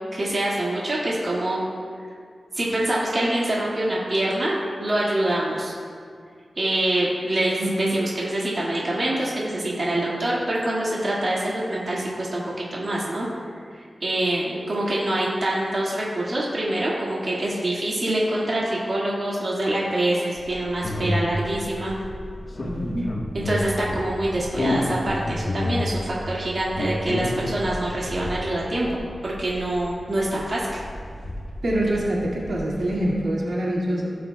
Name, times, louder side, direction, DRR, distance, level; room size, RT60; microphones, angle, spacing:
voice 1, 0.1-1.6 2.5-5.7 6.6-13.3 13.7-21.9 23.3-30.8, right 1 dB, 50° right, -6 dB, 1.9 m, -25 dB
sound 1, 20.4-33.2, left 1 dB, 50° left, 1.0 m, -31 dB
voice 2, 22.6-23.2 31.6-34.2, right 1 dB, 80° right, -6 dB, 2.2 m, -25 dB
17.0 x 7.7 x 2.3 m, 2.2 s
wide cardioid pair, 80°, 0 cm